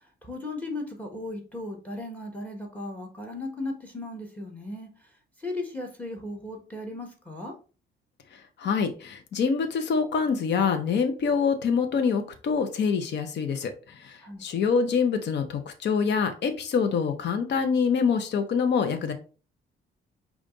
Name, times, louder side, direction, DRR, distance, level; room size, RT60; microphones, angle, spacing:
voice 1, 0.2-4.9 5.4-7.5 14.2-14.4, left 2 dB, 5° left, 3 dB, 1.4 m, -36 dB
voice 2, 8.6-13.7 14.0-19.1, left 5 dB, 60° left, 7 dB, 0.8 m, -25 dB
5.1 x 2.5 x 3.8 m, 0.36 s
cardioid pair, 90°, 20 cm